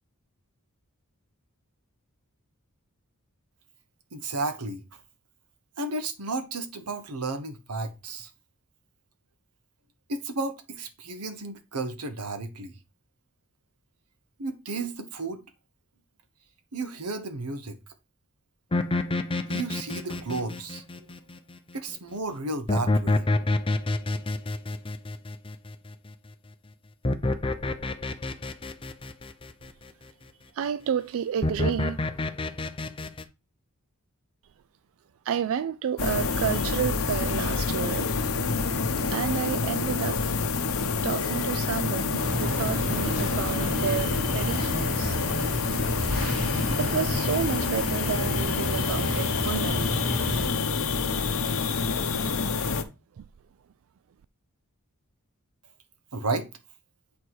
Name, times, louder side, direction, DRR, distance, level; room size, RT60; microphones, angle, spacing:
voice 1, 4.1-4.8 5.8-8.3 10.1-12.8 14.4-15.4 16.7-17.8 19.5-21.0 21.7-23.3 56.1-56.5, right 3 dB, 90° right, 1.2 m, -33 dB
sound 1, 18.7-21.6 22.7-26.1 27.0-29.7 31.4-33.2, left 2 dB, 25° left, 0.6 m, -28 dB
voice 2, 30.5-32.0 35.2-38.1 39.1-40.2 41.0-45.2 46.8-50.0 53.2-53.3, right 8 dB, 65° right, 0.3 m, -30 dB
sound 2, 36.0-52.8, left 4 dB, 65° left, 0.9 m, -27 dB
sound 3, 42.2-50.5, equal, 40° right, 2.6 m, -32 dB
8.4 x 4.3 x 4.7 m
head